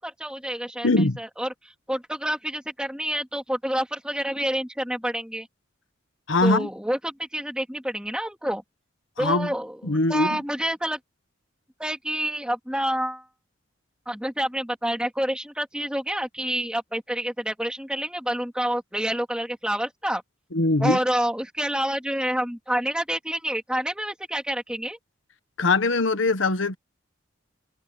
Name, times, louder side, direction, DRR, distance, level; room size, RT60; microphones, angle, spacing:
voice 1, 0.0-5.5 6.4-8.6 9.2-11.0 11.8-13.3 14.1-20.2 20.8-25.0, right 1 dB, 5° right, 2.8 m, -28 dB
voice 2, 0.8-1.2 6.3-6.7 9.2-9.5 9.8-10.4 20.5-21.0 25.6-26.8, left 2 dB, 75° left, 1.3 m, -21 dB
head